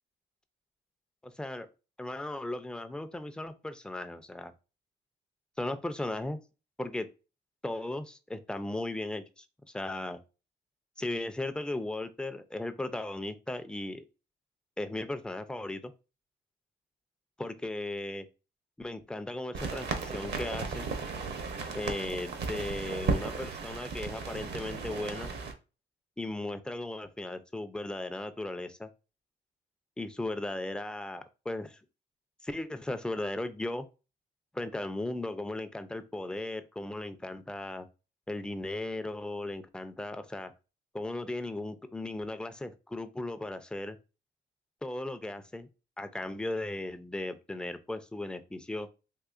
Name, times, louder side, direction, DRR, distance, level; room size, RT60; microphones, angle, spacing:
voice 1, 1.2-1.7 2.0-4.5 5.6-6.4 6.8-7.1 7.6-9.5 9.7-10.2 11.0-14.0 14.8-15.9 17.4-18.3 18.8-20.9 21.7-25.3 26.2-28.9 30.0-31.8 32.4-33.9 34.5-37.9 38.3-40.5 40.9-44.0 44.8-45.7 46.0-48.9, left 2 dB, 5° left, 8 dB, 0.4 m, -36 dB
sound 1, 19.5-25.5, right 4 dB, 55° right, 0.8 m, -35 dB
3.7 x 2.7 x 2.4 m, 0.31 s
cardioid pair, 90°, 20 cm